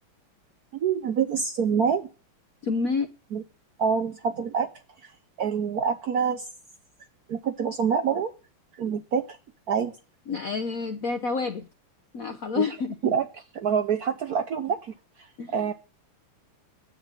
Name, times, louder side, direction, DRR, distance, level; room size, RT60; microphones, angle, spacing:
voice 1, 0.7-2.1 3.3-3.4 3.8-4.7 5.0-5.1 5.4-6.4 7.3-8.3 8.8-9.2 9.7-9.9 12.6-12.7 13.0-13.3 13.5-14.9 15.5-15.7, right 7 dB, 65° right, 1.0 m, -26 dB
voice 2, 2.6-3.1 10.3-11.7 12.1-13.1 15.4-15.6, left 5 dB, 65° left, 0.8 m, -29 dB
9.6 x 8.1 x 8.9 m
omnidirectional pair, 2.4 m